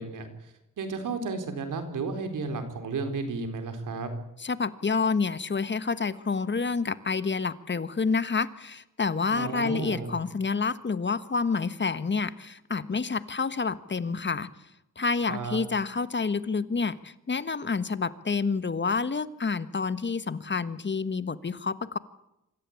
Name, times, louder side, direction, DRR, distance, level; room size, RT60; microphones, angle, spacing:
voice 1, 0.0-4.1 9.3-10.2 15.3-15.6, right 4 dB, 80° right, 8 dB, 4.1 m, -33 dB
voice 2, 4.4-14.5 15.0-22.0, left 4 dB, 35° left, 14 dB, 1.5 m, -28 dB
25.5 x 14.0 x 8.7 m, 0.88 s
cardioid pair, 70°, 31 cm